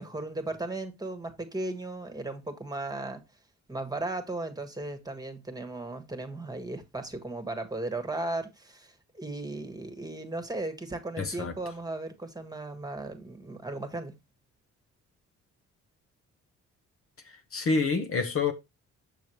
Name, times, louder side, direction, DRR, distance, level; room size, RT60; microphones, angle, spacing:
voice 1, 0.0-3.2 3.7-14.1, right 2 dB, 15° right, 1.6 m, -36 dB
voice 2, 11.2-11.5 17.5-18.5, left 4 dB, 45° left, 1.2 m, -27 dB
6.9 x 6.3 x 3.1 m
cardioid pair, 90°, 30 cm